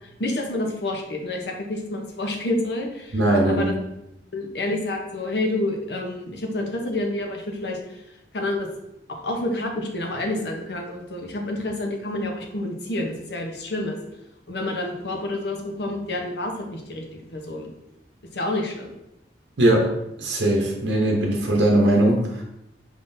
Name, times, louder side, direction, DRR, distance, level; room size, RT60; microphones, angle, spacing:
voice 1, 0.0-3.2 3.5-3.7 4.3-7.8 8.3-8.7 9.1-14.0 14.5-17.0 17.3-17.7 18.3-18.9, left 1 dB, 70° left, 2 dB, 0.8 m, -28 dB
voice 2, 3.1-3.7 19.6-19.9 20.2-22.4, right 1 dB, 90° right, -1 dB, 0.8 m, -20 dB
5.0 x 3.7 x 2.7 m, 0.86 s
head